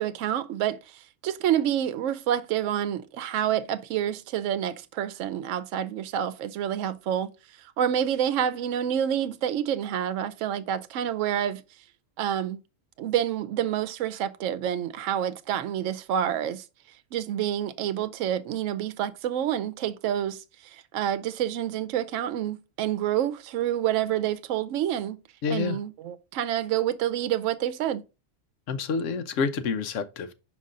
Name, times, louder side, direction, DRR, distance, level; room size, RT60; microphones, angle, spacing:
voice 1, 0.0-7.3 7.8-11.6 12.2-12.6 13.0-16.6 17.1-20.4 20.7-25.2 25.5-28.0, right 10 dB, 75° right, 0.9 m, -28 dB
voice 2, 25.4-25.8 28.7-30.3, left 5 dB, 75° left, 1.1 m, -28 dB
5.3 x 5.3 x 3.7 m
omnidirectional pair, 1.3 m